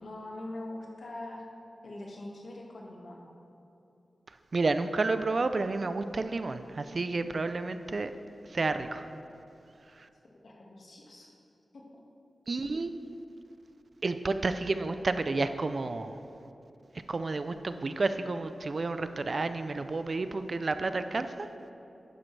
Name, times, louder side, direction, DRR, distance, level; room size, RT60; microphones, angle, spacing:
voice 1, 0.0-1.4 1.8-3.3 10.4-11.3 11.7-12.0, left 1 dB, 70° left, -2 dB, 1.8 m, -43 dB
voice 2, 4.5-8.1 8.5-9.1 10.0-10.1 12.5-12.9 14.0-16.2 17.1-21.5, right 3 dB, 50° right, 10 dB, 0.5 m, -30 dB
11.5 x 10.0 x 3.3 m, 2.9 s
wide cardioid pair, 90°, 0 cm